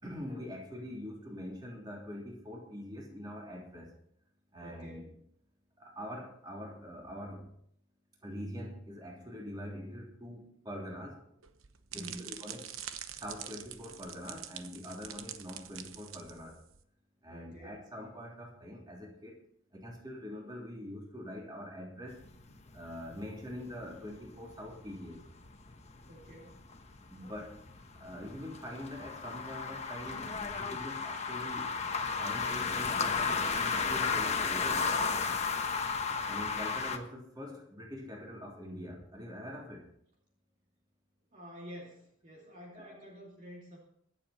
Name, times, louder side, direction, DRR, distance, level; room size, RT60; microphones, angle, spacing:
voice 1, 0.0-3.9 4.5-5.0 5.8-7.5 8.2-11.2 11.9-12.6 13.2-16.6 17.2-19.4 19.7-22.2 22.7-25.2 27.1-27.6 28.0-31.7 32.0-34.9 36.3-39.8 42.7-43.0, equal, 20° right, -1 dB, 3.2 m, -44 dB
voice 2, 4.6-5.1 11.9-12.4 17.3-17.8 26.1-26.6 41.3-43.8, equal, 35° right, -2 dB, 2.6 m, -49 dB
sound 1, 11.4-16.8, right 10 dB, 80° right, 1.0 m, -45 dB
sound 2, 22.1-37.0, left 5 dB, 30° left, 1.2 m, -34 dB
23.5 x 7.9 x 4.3 m, 0.69 s
head